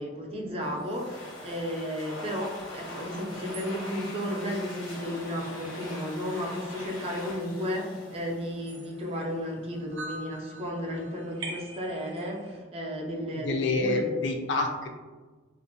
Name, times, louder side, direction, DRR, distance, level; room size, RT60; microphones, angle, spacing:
voice 1, 0.0-14.2, equal, 30° right, -1 dB, 0.4 m, -33 dB
Domestic sounds home sounds, 0.6-9.1, left 1 dB, 90° left, 0.8 m, -42 dB
sound 1, 3.4-12.6, right 2 dB, 80° right, 0.6 m, -46 dB
voice 2, 13.3-14.9, left 3 dB, 65° left, 3 dB, 0.4 m, -28 dB
2.4 x 2.1 x 2.6 m, 1.3 s
head